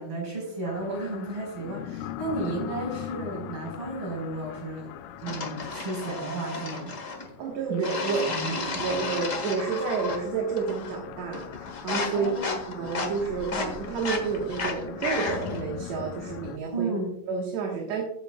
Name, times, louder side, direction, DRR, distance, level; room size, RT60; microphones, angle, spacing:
voice 1, 0.0-4.9 5.2-6.9 7.7-7.9 8.3-8.6 12.1-12.6 16.7-17.1, right 2 dB, 50° right, -1 dB, 5.4 m, -33 dB
sound 1, 0.6-16.6, left 11 dB, 90° left, 2.1 m, -41 dB
sound 2, 5.3-7.3 7.8-10.3 10.6-11.0 11.3-15.6, left 3 dB, 45° left, 1.1 m, -33 dB
voice 2, 7.4-8.2 8.6-12.3 12.7-16.9 17.3-18.0, right 5 dB, 70° right, 0 dB, 2.6 m, -30 dB
16.0 x 8.1 x 2.3 m, 0.76 s
omnidirectional pair, 3.4 m